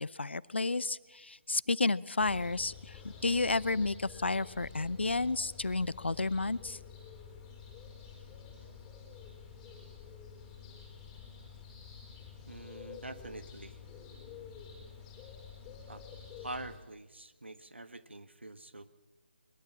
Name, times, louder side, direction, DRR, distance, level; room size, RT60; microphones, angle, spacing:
voice 1, 0.0-6.8, left 3 dB, 70° left, 19 dB, 0.7 m, -31 dB
sound 1, 2.2-16.8, left 6 dB, 10° left, 4.3 m, -50 dB
voice 2, 12.5-13.8 15.9-16.0 16.4-18.9, right 2 dB, 75° right, 11 dB, 1.6 m, -45 dB
22.0 x 21.5 x 7.4 m, 1.2 s
figure-of-eight pair, 150°, 6 cm